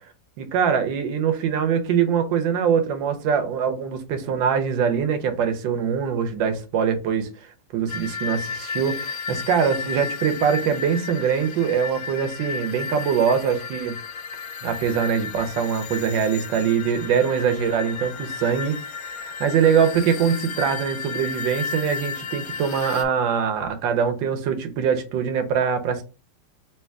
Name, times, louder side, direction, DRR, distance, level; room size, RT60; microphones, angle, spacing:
voice 1, 0.4-14.0 14.6-18.8 19.0-26.0, right 7 dB, 85° right, 1.5 m, -23 dB
sound 1, 7.9-23.0, left 5 dB, 65° left, 0.9 m, -33 dB
3.3 x 2.9 x 4.6 m
omnidirectional pair, 2.0 m